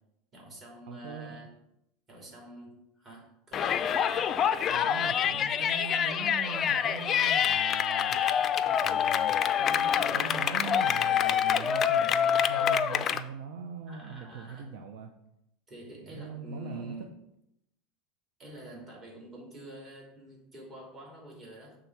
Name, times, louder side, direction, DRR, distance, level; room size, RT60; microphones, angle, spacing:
voice 1, 0.3-1.5 2.1-3.8 13.9-14.6 15.7-17.1 18.4-21.8, right 1 dB, 30° right, -3 dB, 2.9 m, -47 dB
voice 2, 0.9-1.5 4.7-8.2 8.8-15.1 15.9-17.0, right 5 dB, 75° right, 4 dB, 0.7 m, -41 dB
Yell, 3.5-13.2, left 8 dB, 35° left, 0.4 m, -26 dB
6.8 x 3.8 x 5.9 m, 0.82 s
supercardioid pair, 130°, 0 cm